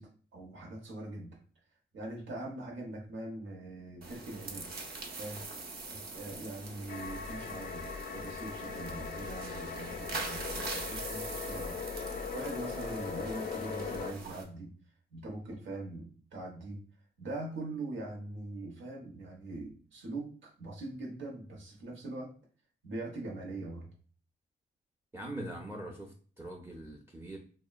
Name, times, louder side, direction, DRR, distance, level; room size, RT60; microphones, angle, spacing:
voice 1, 0.0-1.4 1.9-4.7 5.2-5.4 5.9-11.8 12.3-14.7 15.1-16.8 17.2-22.3 22.8-23.9, right 2 dB, 85° right, 0 dB, 0.9 m, -42 dB
sound 1, 4.0-14.4, right 3 dB, 55° right, 0.7 m, -43 dB
sound 2, 6.9-14.1, left 5 dB, 50° left, 0.4 m, -39 dB
voice 2, 25.1-27.4, right 1 dB, 15° right, 0 dB, 0.5 m, -42 dB
2.8 x 2.2 x 2.3 m, 0.42 s
cardioid pair, 65°, 19 cm